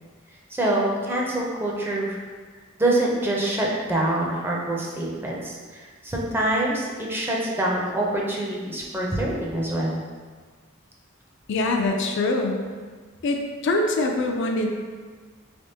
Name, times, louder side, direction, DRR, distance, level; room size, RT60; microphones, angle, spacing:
voice 1, 0.5-2.2 2.8-10.0, right 1 dB, 10° right, -3 dB, 0.5 m, -25 dB
voice 2, 11.5-12.6 13.2-14.7, left 2 dB, 60° left, 2 dB, 0.4 m, -23 dB
3.6 x 3.4 x 2.7 m, 1.5 s
head